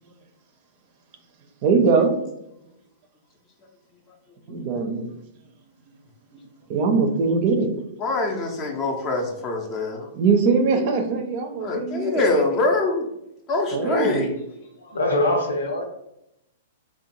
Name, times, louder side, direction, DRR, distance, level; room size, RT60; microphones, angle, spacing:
voice 1, 1.6-2.1 4.5-5.1 6.7-7.7 10.1-12.2 13.7-14.3, right 4 dB, 45° right, 5 dB, 0.4 m, -21 dB
voice 2, 8.0-10.1 11.6-13.1 13.5-14.3, left 2 dB, 30° left, 2 dB, 0.4 m, -24 dB
voice 3, 14.8-15.8, left 1 dB, 75° left, 2 dB, 0.6 m, -23 dB
2.6 x 2.1 x 2.9 m, 0.83 s
figure-of-eight pair, 105°, 0 cm